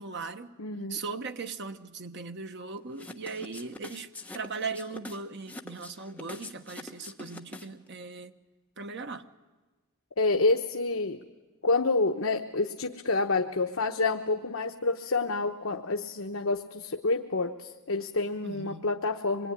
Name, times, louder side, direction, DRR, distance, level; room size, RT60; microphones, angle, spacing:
voice 1, 0.0-0.6 0.9-8.3 8.8-9.3 18.4-18.9, right 4 dB, 50° right, 1.1 m, -38 dB
voice 2, 0.6-1.0 10.2-11.2 11.6-19.5, left 3 dB, 65° left, 1.0 m, -28 dB
sound 1, 2.9-7.9, left 2 dB, 5° left, 1.2 m, -44 dB
25.5 x 22.0 x 9.9 m
head